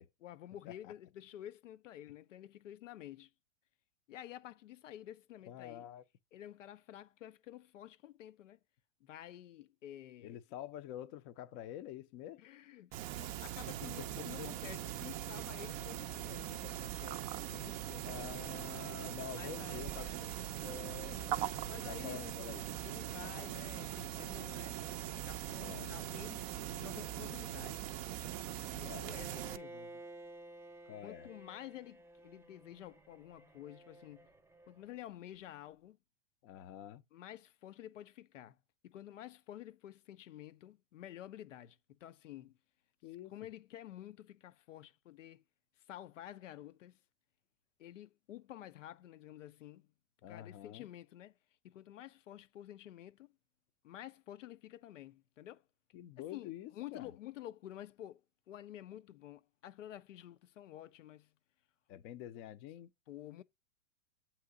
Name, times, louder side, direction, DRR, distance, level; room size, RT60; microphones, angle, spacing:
voice 1, 0.2-3.3 4.1-5.9 6.3-8.6 9.0-10.4 12.4-18.1 19.3-20.5 21.6-22.3 22.8-24.8 25.1-27.9 28.7-30.0 31.0-34.3 34.7-36.0 37.1-38.6 38.8-42.6 43.3-45.4 45.9-47.0 47.8-49.9 50.3-51.4 51.6-53.3 53.8-55.6 56.2-61.3 63.1-63.4, left 12 dB, 85° left, 0.5 m, -51 dB
voice 2, 5.5-6.0 10.2-12.4 13.8-14.5 18.0-20.1 20.6-22.7 25.6-26.0 28.8-29.1 30.8-31.3 36.4-37.0 43.0-43.3 50.2-50.9 55.9-57.1 61.9-62.9, left 12 dB, 30° left, 0.4 m, -47 dB
sound 1, 12.9-29.6, right 12 dB, 35° right, 0.4 m, -41 dB
Bowed string instrument, 29.0-35.0, right 2 dB, 5° right, 0.7 m, -54 dB
7.8 x 2.9 x 4.7 m
hypercardioid pair, 115°, 36 cm